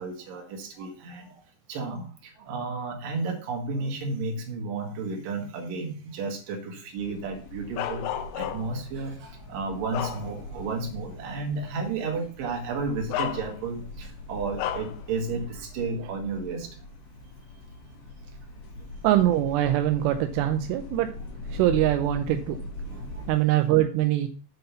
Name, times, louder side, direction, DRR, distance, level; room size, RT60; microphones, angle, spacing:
voice 1, 0.0-1.4 1.7-8.1 8.4-16.8 22.9-23.3, right 3 dB, 60° right, 2 dB, 2.7 m, -32 dB
sound 1, 7.0-23.3, left 1 dB, 60° left, 3.2 m, -42 dB
Bark, 7.8-8.8 9.4-10.7 11.1-11.3 12.4-12.5 13.1-13.9 14.6-15.0, left 11 dB, 85° left, 3.0 m, -32 dB
voice 2, 19.0-21.1 21.5-22.6 23.3-24.3, right 13 dB, 85° right, 7 dB, 2.4 m, -23 dB
7.8 x 4.0 x 6.8 m, 0.41 s
omnidirectional pair, 5.4 m